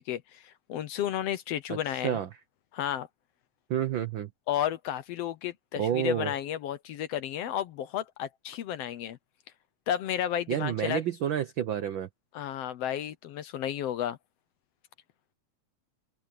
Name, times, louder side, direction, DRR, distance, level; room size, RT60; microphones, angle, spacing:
voice 1, 0.0-2.2 2.7-3.1 4.5-9.2 9.9-11.0 12.3-14.2, left 10 dB, 70° left, 1.7 m, -32 dB
voice 2, 1.7-2.3 3.7-4.3 5.8-6.3 10.5-12.1, right 10 dB, 85° right, 1.0 m, -30 dB
omnidirectional pair, 3.3 m